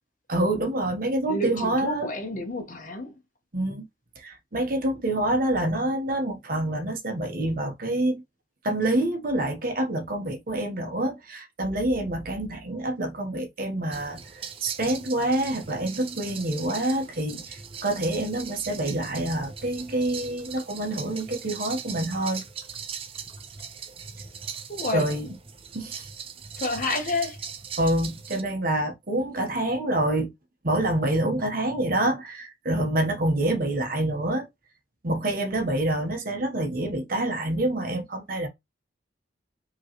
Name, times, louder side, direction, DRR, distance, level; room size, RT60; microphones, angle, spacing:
voice 1, 0.3-2.1 3.5-3.9 4.2-8.2 8.6-22.4 24.9-25.3 25.7-26.1 27.8-30.3 30.6-34.5 35.0-38.5, right 1 dB, 50° right, 1.0 m, -27 dB
voice 2, 1.3-3.1 24.7-25.1 26.6-27.5, left 2 dB, 45° left, 1.1 m, -30 dB
sound 1, 13.9-28.4, right 6 dB, 30° right, 0.5 m, -40 dB
5.2 x 3.1 x 2.9 m
head